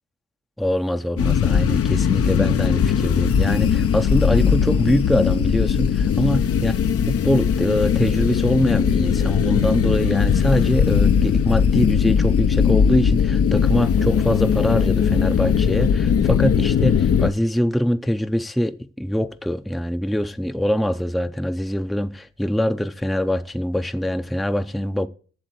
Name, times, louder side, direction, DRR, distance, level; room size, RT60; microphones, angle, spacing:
voice 1, 0.6-6.7 7.0-25.1, equal, ahead, 0.6 m, -23 dB
sound 1, 1.2-17.3, left 7 dB, 50° left, 0.7 m, -19 dB
8.1 x 7.3 x 7.8 m
cardioid pair, 90°, 30 cm